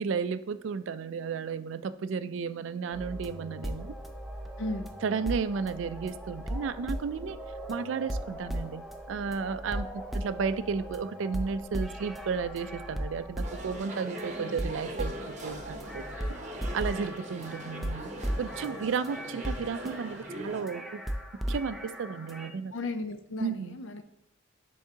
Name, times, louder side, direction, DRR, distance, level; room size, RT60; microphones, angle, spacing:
voice 1, 0.0-3.9 5.0-7.4 7.7-9.9 10.1-16.0 16.7-18.1 18.4-21.0 21.5-22.7 23.4-23.8, right 5 dB, 65° right, 13 dB, 0.4 m, -33 dB
sound 1, 2.9-22.5, equal, ahead, 0.4 m, -37 dB
voice 2, 4.6-4.9 22.7-24.0, left 2 dB, 70° left, 9 dB, 0.5 m, -35 dB
sound 2, 13.4-20.6, right 1 dB, 35° right, 0.8 m, -40 dB
10.0 x 3.5 x 2.8 m, 0.79 s
head